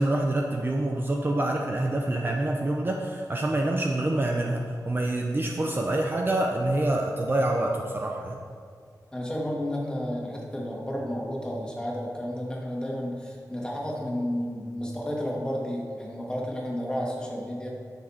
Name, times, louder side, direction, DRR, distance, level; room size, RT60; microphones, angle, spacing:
voice 1, 0.0-8.4, right 1 dB, 30° right, 0 dB, 0.8 m, -26 dB
voice 2, 9.1-17.7, equal, 10° left, -3 dB, 2.2 m, -32 dB
13.0 x 6.7 x 4.3 m, 2.2 s
wide cardioid pair, 100°, 7 cm